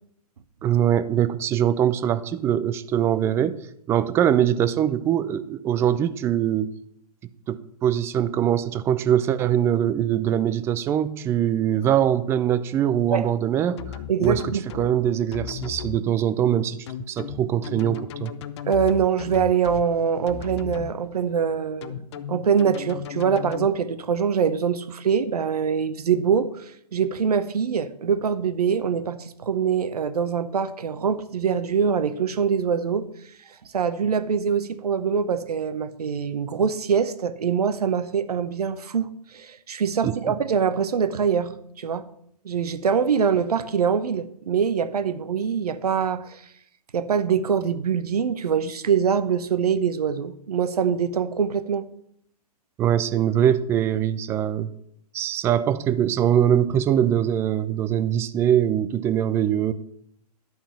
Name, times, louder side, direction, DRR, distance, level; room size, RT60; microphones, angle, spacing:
voice 1, 0.6-3.6 3.9-6.7 7.5-13.8 14.2-14.4 14.7-16.8 17.1-18.3 40.0-40.4 52.8-54.7 55.1-59.7, right 10 dB, 10° right, 13 dB, 0.4 m, -22 dB
sound 1, 13.8-14.9 15.3-16.0 16.9-19.9 20.3-20.9 21.8-23.7, left 9 dB, 45° left, 0.7 m, -35 dB
voice 2, 14.1-14.6 18.7-22.0 22.3-26.6 26.9-33.1 33.7-42.1 42.4-46.4 46.9-51.8, right 7 dB, 70° right, 12 dB, 1.0 m, -24 dB
11.5 x 5.5 x 7.0 m, 0.71 s
figure-of-eight pair, 125°, 21 cm